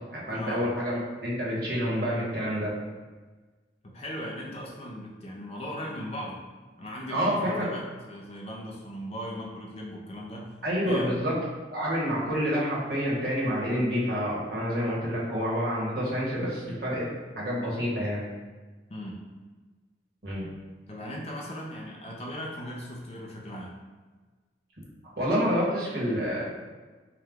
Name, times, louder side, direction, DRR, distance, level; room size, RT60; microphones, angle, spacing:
voice 1, 0.1-2.7 7.1-7.7 10.6-11.4 11.7-17.1 17.4-18.2 20.2-20.5 25.2-26.5, equal, 55° right, -6 dB, 1.2 m, -28 dB
voice 2, 3.8-6.4 6.8-10.6 10.9-11.2 18.9-19.2 20.9-23.7, equal, 35° left, -2 dB, 0.5 m, -38 dB
4.7 x 2.3 x 3.5 m, 1.3 s
head